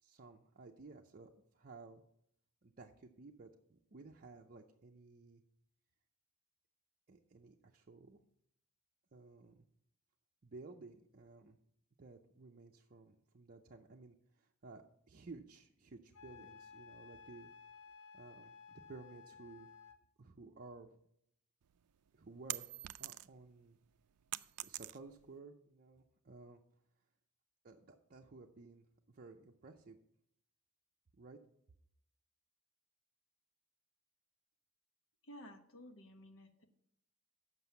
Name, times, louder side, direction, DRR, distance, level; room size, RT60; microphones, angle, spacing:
voice 1, 0.0-2.0 2.6-5.4 7.1-8.2 9.1-9.7 10.4-11.6 12.0-17.5 18.1-19.7 20.2-21.0 22.1-22.7 23.0-23.8 24.6-26.6 27.6-30.0 31.2-31.4, right 3 dB, 40° right, 1 dB, 0.6 m, -55 dB
Wind instrument woodwind instrument, 16.1-20.0, left 6 dB, 85° left, 0.8 m, -56 dB
sound 1, 21.7-23.5 23.9-25.3, right 16 dB, 80° right, 0.4 m, -44 dB
voice 2, 35.2-36.6, equal, 60° left, 6 dB, 1.1 m, -54 dB
7.6 x 6.0 x 7.0 m, 0.74 s
head